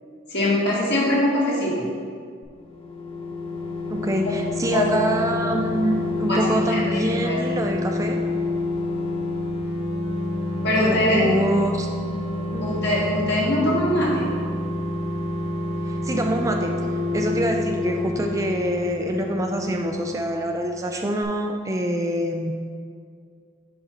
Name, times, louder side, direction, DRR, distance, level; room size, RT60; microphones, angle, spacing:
voice 1, 0.3-1.8 4.7-4.9 6.3-7.6 10.6-11.3 12.6-14.3, left 1 dB, 55° left, -5 dB, 1.7 m, -22 dB
sound 1, 2.6-20.9 21.2-21.3, left 2 dB, 30° left, 0.6 m, -28 dB
voice 2, 3.9-8.2 10.8-11.9 12.5-12.7 15.8-16.8 17.1-22.5, right 1 dB, 15° right, 3 dB, 0.3 m, -25 dB
6.3 x 4.7 x 4.3 m, 2.2 s
head